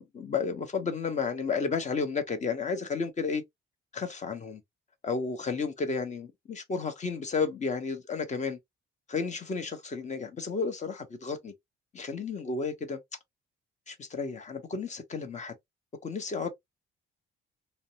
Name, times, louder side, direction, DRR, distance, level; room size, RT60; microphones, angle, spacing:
voice 1, 0.0-3.4 3.9-4.6 5.0-8.6 9.1-11.5 11.9-13.0 13.9-15.5 16.0-16.5, left 5 dB, 35° left, 0.9 m, -32 dB
2.6 x 2.0 x 2.8 m
cardioid pair, 90°, 20 cm